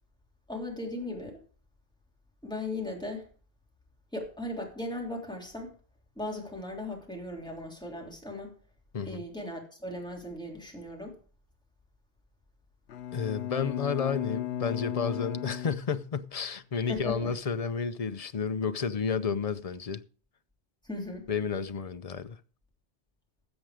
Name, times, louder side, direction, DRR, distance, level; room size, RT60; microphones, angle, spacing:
voice 1, 0.5-1.4 2.4-3.2 4.1-5.7 6.1-8.5 9.0-11.1 16.7-17.3 20.8-21.3, left 2 dB, 5° left, 3.2 m, -37 dB
Bowed string instrument, 12.9-16.5, left 10 dB, 90° left, 1.0 m, -36 dB
voice 2, 13.1-20.0 21.3-22.4, left 6 dB, 45° left, 0.6 m, -31 dB
13.5 x 7.7 x 4.9 m
omnidirectional pair, 1.0 m